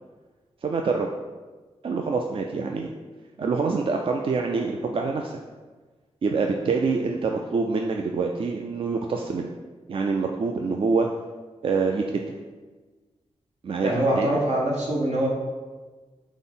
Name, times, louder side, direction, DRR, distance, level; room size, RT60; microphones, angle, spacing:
voice 1, 0.6-1.1 1.8-2.9 3.4-5.4 6.2-9.5 9.9-11.1 11.6-12.0 13.6-14.3, right 4 dB, 50° right, 2 dB, 0.3 m, -25 dB
voice 2, 13.8-15.3, right 1 dB, 75° right, -2 dB, 1.0 m, -23 dB
5.4 x 2.0 x 3.9 m, 1.3 s
cardioid pair, 60°, 12 cm